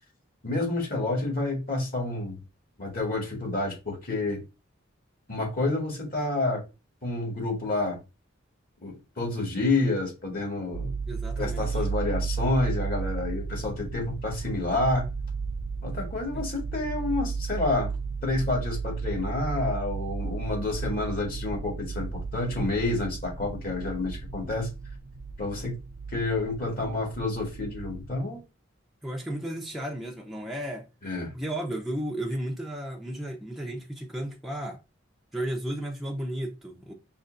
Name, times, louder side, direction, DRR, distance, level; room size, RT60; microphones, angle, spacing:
voice 1, 0.4-2.4 2.8-4.4 5.3-6.6 7.0-8.0 8.8-10.9 11.4-15.1 15.8-17.9 18.2-24.7 25.4-25.8 26.1-28.4 31.0-31.3, left 2 dB, 45° left, 2.0 m, -29 dB
sound 1, 10.7-28.2, right 5 dB, 55° right, 0.4 m, -34 dB
voice 2, 11.1-11.8 16.3-16.5 29.0-30.9 31.3-34.8 35.3-36.9, right 1 dB, ahead, 0.6 m, -34 dB
5.4 x 3.0 x 2.5 m
head